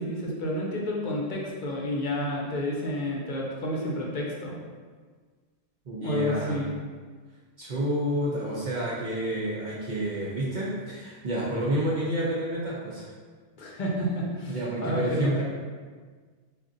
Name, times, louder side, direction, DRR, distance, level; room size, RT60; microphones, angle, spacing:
voice 1, 0.0-4.6 6.0-6.7 13.6-15.4, equal, 45° left, -3 dB, 0.7 m, -30 dB
voice 2, 5.9-6.6 7.6-13.1 14.5-15.4, right 1 dB, 50° right, -7 dB, 0.6 m, -29 dB
5.1 x 2.5 x 2.5 m, 1.5 s
omnidirectional pair, 1.2 m